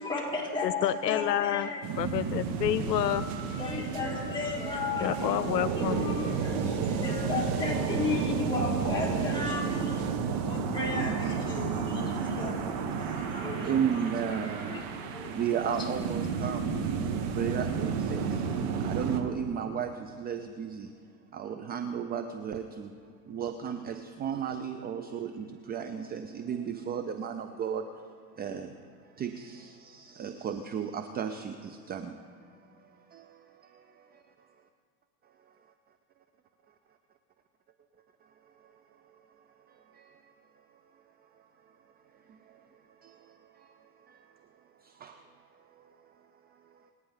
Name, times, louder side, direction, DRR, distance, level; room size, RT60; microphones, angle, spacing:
voice 1, 0.0-1.8 3.0-5.2 5.8-10.2 10.5-12.6 13.0-13.8 14.3-14.8 15.1-15.2, left 3 dB, 10° left, -4 dB, 4.6 m, -34 dB
voice 2, 0.6-1.7 2.0-3.3 5.0-6.0, left 12 dB, 85° left, 15 dB, 0.7 m, -28 dB
sound 1, 1.8-19.2, right 6 dB, 45° right, 1.9 m, -32 dB
voice 3, 13.6-14.8 15.3-18.4 18.8-20.9 21.3-23.0 23.3-34.2 35.2-35.5 38.2-40.5 40.9-46.9, right 8 dB, 20° right, 8 dB, 0.6 m, -36 dB
28.0 x 9.5 x 4.0 m, 2.2 s
hypercardioid pair, 110°, 49 cm